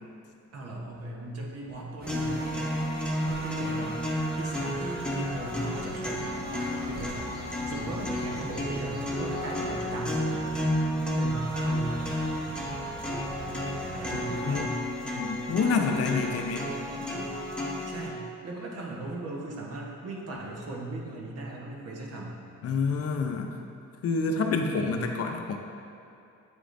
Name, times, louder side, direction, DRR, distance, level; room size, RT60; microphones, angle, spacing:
voice 1, 0.5-2.7 3.3-4.0 4.4-6.4 6.8-7.3 7.7-10.5 11.2-12.0 13.9-14.8 15.6-16.5 16.9-17.5 17.8-22.4 24.8-25.0, right 2 dB, 55° right, -2 dB, 1.1 m, -38 dB
sound 1, 2.0-14.6, right 1 dB, 30° right, 0.9 m, -42 dB
sound 2, 2.1-18.1, equal, 5° left, 0.9 m, -32 dB
voice 2, 14.1-14.7 15.2-16.6 22.6-23.6 24.0-25.6, left 4 dB, 50° left, 4 dB, 0.6 m, -28 dB
8.1 x 4.9 x 2.6 m, 2.6 s
cardioid pair, 90°, 30 cm